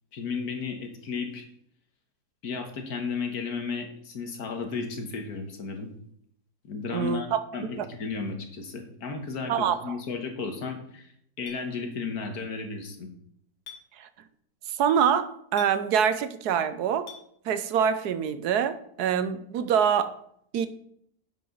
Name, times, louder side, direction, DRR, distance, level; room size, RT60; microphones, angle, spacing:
voice 1, 0.1-1.4 2.4-5.9 6.6-7.3 7.5-11.1 11.4-13.1, left 4 dB, 65° left, 1.8 m, -34 dB
voice 2, 6.9-7.4 7.8-7.9 9.5-10.0 14.0-14.1 14.7-17.1 17.4-20.2 20.5-20.7, right 8 dB, 75° right, 1.2 m, -25 dB
Chink clink, 11.5-11.6 13.6-13.8 15.6-15.8 17.1-17.2, left 6 dB, 45° left, 2.0 m, -43 dB
10.0 x 7.6 x 3.9 m
omnidirectional pair, 1.8 m